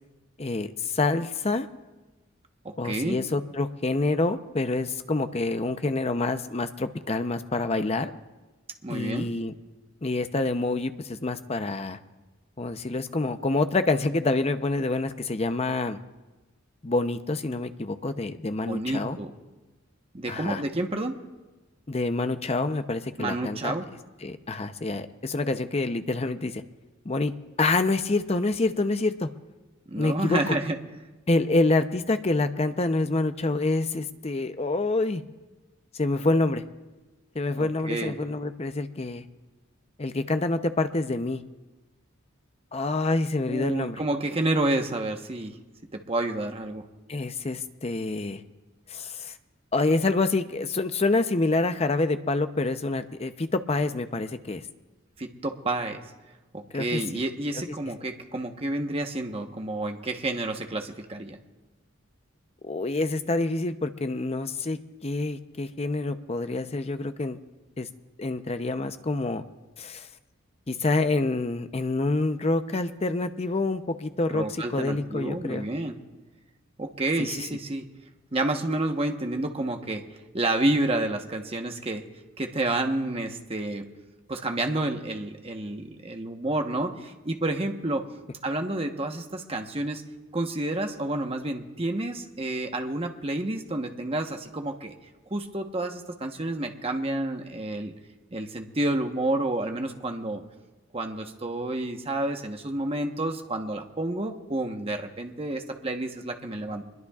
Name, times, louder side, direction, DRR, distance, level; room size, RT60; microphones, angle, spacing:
voice 1, 0.4-1.7 2.8-8.1 8.9-9.5 10.0-12.0 12.6-16.0 16.8-19.2 20.3-20.6 21.9-23.7 24.2-26.6 27.0-27.3 27.6-29.3 30.0-30.6 31.3-35.2 35.9-36.6 37.3-39.3 40.0-41.4 42.7-44.0 47.1-48.4 48.9-49.3 49.7-54.6 56.7-57.0 62.6-67.4 67.8-67.9 68.2-69.4 69.8-70.1 70.7-75.7 77.2-77.3, left 2 dB, 30° left, 9 dB, 0.7 m, -27 dB
voice 2, 2.6-3.2 8.8-9.3 18.6-19.3 20.1-21.2 23.2-23.9 29.9-30.8 37.6-38.1 43.5-45.6 45.9-46.8 55.2-56.0 56.5-61.4 74.3-75.9 76.8-77.8 78.3-80.0 80.3-82.0 82.4-83.9 84.3-88.0 88.4-90.0 90.3-95.0 95.3-97.9 98.3-100.4 100.9-106.8, right 2 dB, 30° right, 4 dB, 1.1 m, -29 dB
24.5 x 21.5 x 2.4 m, 1.2 s
head